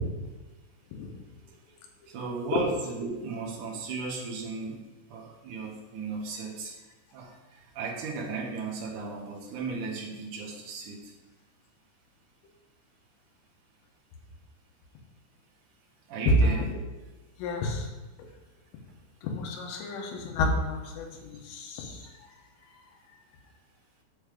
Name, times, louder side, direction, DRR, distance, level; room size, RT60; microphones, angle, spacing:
voice 1, 2.1-4.8 5.1-6.7 7.1-7.3 7.7-11.1 16.1-16.7, right 4 dB, 60° right, -2 dB, 2.3 m, -35 dB
voice 2, 17.4-17.9 19.2-22.0, left 3 dB, 80° left, 1 dB, 3.8 m, -32 dB
8.1 x 7.2 x 5.2 m, 1.2 s
omnidirectional pair, 5.7 m